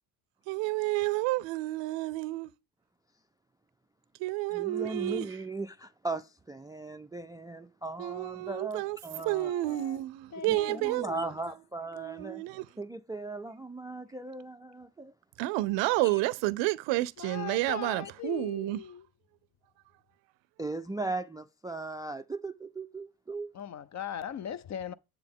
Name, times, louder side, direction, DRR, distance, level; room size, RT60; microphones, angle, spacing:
voice 1, 0.5-2.5 4.2-5.4 8.0-9.0 9.3-11.3 12.0-12.7 15.4-18.8, right 18 dB, 85° right, 0.5 m, -30 dB
voice 2, 4.5-9.8 10.5-12.4 12.8-15.1 20.6-23.5, right 2 dB, 10° right, 0.3 m, -38 dB
voice 3, 9.1-10.0 10.3-10.9 17.2-19.1 23.5-24.9, left 9 dB, 40° left, 0.5 m, -40 dB
7.6 x 7.1 x 3.6 m
supercardioid pair, 75°, 43 cm